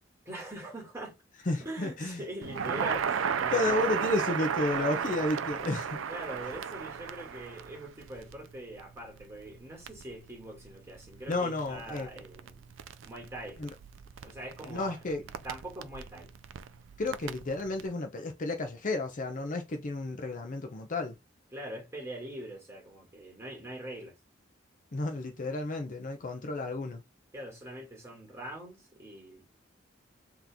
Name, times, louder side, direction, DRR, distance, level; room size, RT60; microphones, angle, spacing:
voice 1, 0.3-1.2 1.6-3.8 6.1-12.6 13.0-13.6 14.2-16.3 21.5-24.2 27.3-29.5, right 1 dB, 15° right, 2.1 m, -43 dB
voice 2, 1.5-2.2 3.5-6.0 11.3-12.1 13.6-13.7 14.6-15.3 17.0-21.2 24.9-27.0, left 2 dB, 45° left, 0.6 m, -32 dB
Crackle, 2.4-17.9, right 7 dB, 85° right, 0.4 m, -36 dB
3.8 x 2.9 x 3.5 m
head